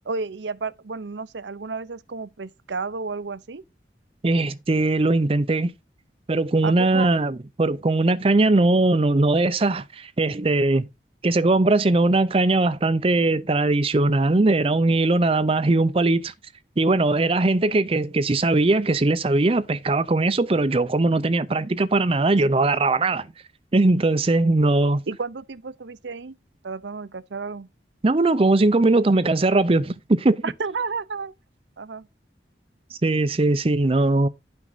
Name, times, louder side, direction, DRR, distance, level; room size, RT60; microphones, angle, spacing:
voice 1, 0.1-3.6 6.6-7.1 25.1-26.4 26.6-27.7 30.4-31.3 31.8-32.1, right 4 dB, 80° right, 0.7 m, -32 dB
voice 2, 4.2-5.7 6.3-10.9 11.2-16.3 16.8-23.3 23.7-25.0 28.0-30.4 32.9-34.3, right 2 dB, 30° right, 0.5 m, -20 dB
11.5 x 6.0 x 4.0 m
head